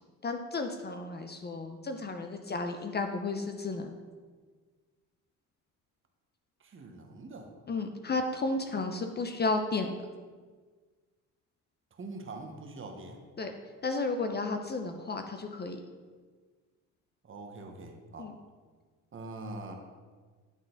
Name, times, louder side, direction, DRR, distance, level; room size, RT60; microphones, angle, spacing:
voice 1, 0.2-3.9 7.7-9.9 13.4-13.5 13.8-15.8 18.2-18.3, left 3 dB, 30° left, 5 dB, 0.6 m, -33 dB
voice 2, 6.6-7.5 11.9-13.2 17.2-18.3 19.1-19.7, right 2 dB, 35° right, 3 dB, 1.1 m, -43 dB
10.0 x 3.9 x 3.9 m, 1.5 s
supercardioid pair, 85°, 36 cm